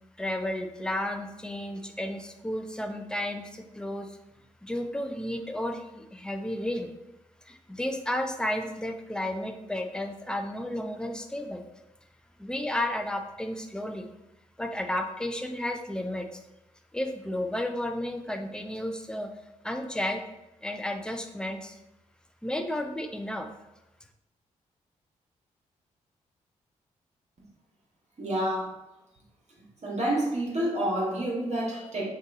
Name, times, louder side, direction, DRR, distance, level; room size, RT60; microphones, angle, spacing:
voice 1, 0.2-4.2 4.6-6.9 7.4-11.6 12.4-14.1 14.6-16.4 16.9-19.3 19.6-20.2 20.6-21.8 22.4-23.5, left 1 dB, 5° left, 5 dB, 0.6 m, -32 dB
voice 2, 28.2-28.7 29.8-32.1, right 1 dB, 50° right, -4 dB, 1.6 m, -28 dB
5.4 x 2.6 x 3.6 m, 0.93 s
hypercardioid pair, 40°, 15 cm